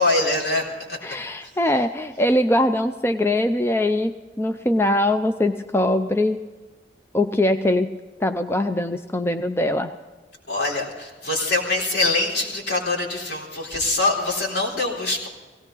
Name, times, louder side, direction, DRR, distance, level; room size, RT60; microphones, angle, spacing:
voice 1, 0.0-1.2 10.5-15.3, left 2 dB, 75° left, -1 dB, 4.0 m, -24 dB
voice 2, 1.0-6.4 7.1-7.9 8.2-9.9, left 1 dB, 15° left, 8 dB, 0.5 m, -22 dB
18.0 x 17.5 x 3.9 m, 1.3 s
head